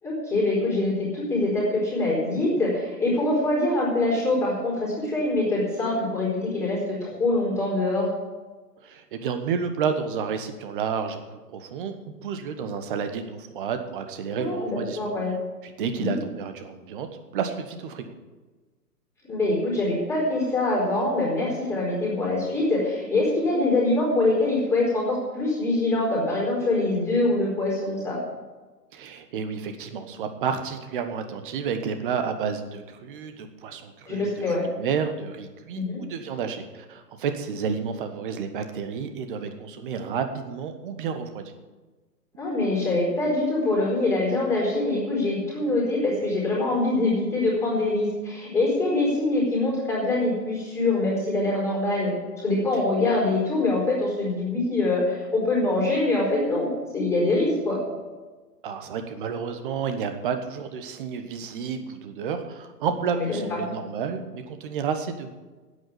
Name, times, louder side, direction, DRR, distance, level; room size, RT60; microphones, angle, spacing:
voice 1, 0.0-8.1 14.4-15.3 16.0-16.2 19.2-28.2 34.1-34.6 35.7-36.0 42.4-52.1 52.4-56.7 56.9-57.8 63.1-63.6, left 2 dB, 5° left, -5 dB, 4.4 m, -24 dB
voice 2, 8.8-11.9 12.2-15.1 15.6-17.1 17.3-18.1 28.9-34.4 34.8-41.5 58.6-65.3, right 6 dB, 30° right, 8 dB, 1.3 m, -30 dB
9.4 x 8.5 x 9.7 m, 1.3 s
figure-of-eight pair, 130°, 48 cm